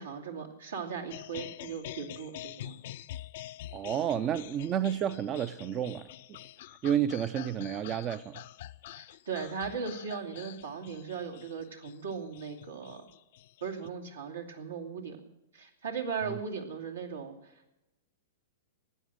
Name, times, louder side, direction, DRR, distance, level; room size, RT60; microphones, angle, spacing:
voice 1, 0.0-2.8 8.9-13.1 13.6-17.5, right 6 dB, 85° right, 2.7 m, -38 dB
sound 1, 1.1-13.9, left 13 dB, 60° left, 0.5 m, -46 dB
voice 2, 3.7-6.1 6.8-8.4 16.3-16.4, right 9 dB, 30° right, 0.5 m, -30 dB
15.5 x 9.7 x 7.7 m
hypercardioid pair, 115°, 0 cm